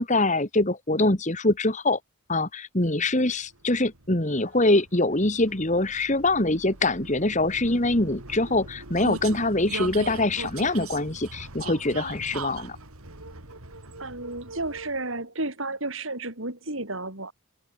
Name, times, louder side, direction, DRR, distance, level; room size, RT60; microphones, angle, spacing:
voice 1, 0.0-2.0 2.3-12.8, left 2 dB, 35° left, 2.1 m, -24 dB
Vehicle, 3.3-15.2, right 3 dB, 90° right, 4.6 m, -40 dB
voice 2, 14.0-17.3, right 2 dB, 65° right, 5.9 m, -32 dB
head